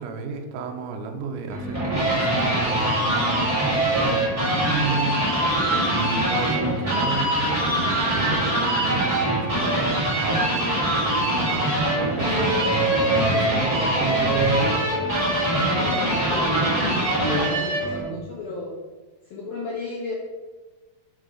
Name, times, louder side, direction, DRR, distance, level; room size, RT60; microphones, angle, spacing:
voice 1, 0.0-5.2 5.9-14.7, right 5 dB, 80° right, 4 dB, 2.0 m, -32 dB
sound 1, 1.5-18.0, right 1 dB, 55° right, 0.4 m, -23 dB
voice 2, 5.6-5.9 15.6-18.7 19.2-20.1, left 1 dB, 85° left, -4 dB, 1.4 m, -32 dB
5.5 x 3.8 x 4.8 m, 1.3 s
omnidirectional pair, 4.0 m